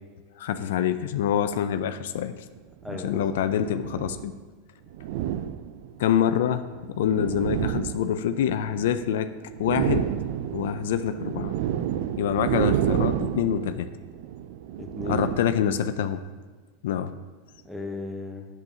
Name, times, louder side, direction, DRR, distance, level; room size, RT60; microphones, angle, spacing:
voice 1, 0.4-2.4 2.9-4.3 6.0-9.3 9.6-10.1 10.5-11.5 12.2-13.9 15.1-16.2 16.8-17.1, left 9 dB, 75° left, 10 dB, 0.3 m, -26 dB
sound 1, 1.7-1.8 2.8-4.3 4.9-6.1 6.7-9.1 9.4-16.0, right 10 dB, 65° right, 0.4 m, -30 dB
voice 2, 2.8-3.4 14.8-15.3 15.6-15.8 17.6-18.5, left 2 dB, ahead, 2 dB, 0.9 m, -36 dB
7.9 x 7.0 x 2.8 m, 1.4 s
supercardioid pair, 120°, 0 cm